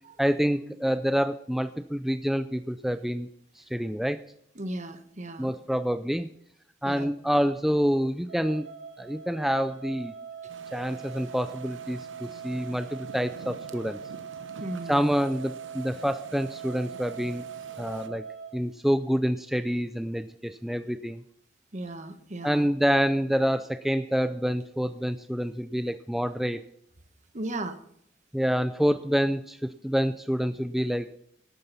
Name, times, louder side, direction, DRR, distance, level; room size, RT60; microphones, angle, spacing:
voice 1, 0.2-3.3 3.5-4.2 5.4-6.3 6.8-8.7 9.0-10.1 10.7-14.0 14.9-17.5 17.8-18.3 18.5-21.2 22.4-26.6 28.3-31.2, equal, ahead, 10 dB, 0.4 m, -27 dB
voice 2, 4.5-5.5 6.8-7.1 14.6-15.1 21.7-22.7 27.3-27.8, right 1 dB, 40° right, 9 dB, 1.2 m, -36 dB
sound 1, 8.3-18.5, right 7 dB, 75° right, 2.8 m, -42 dB
sound 2, 10.5-18.1, right 4 dB, 90° right, 0.9 m, -48 dB
12.5 x 9.5 x 5.7 m, 0.72 s
head